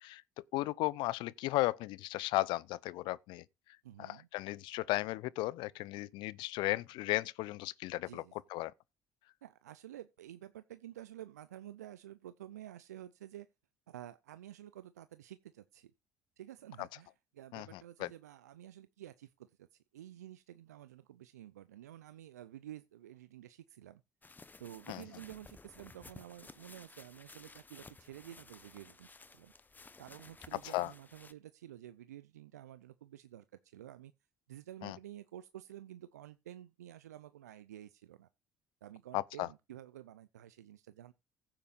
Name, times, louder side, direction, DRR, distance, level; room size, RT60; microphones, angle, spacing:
voice 1, 0.5-3.4 4.0-8.2 8.5-8.7 17.5-18.1 24.9-25.0 30.6-30.9 34.8-35.0 39.1-39.5, left 18 dB, 65° left, 0.5 m, -35 dB
voice 2, 3.8-4.3 8.1-8.3 9.4-13.5 13.9-15.9 16.4-24.0 24.6-29.5 30.0-34.1 34.5-38.3 38.8-41.1, right 12 dB, 90° right, 0.5 m, -51 dB
sound 1, 24.2-31.3, left 3 dB, 20° left, 1.0 m, -56 dB
15.5 x 8.7 x 2.5 m
hypercardioid pair, 55°, 8 cm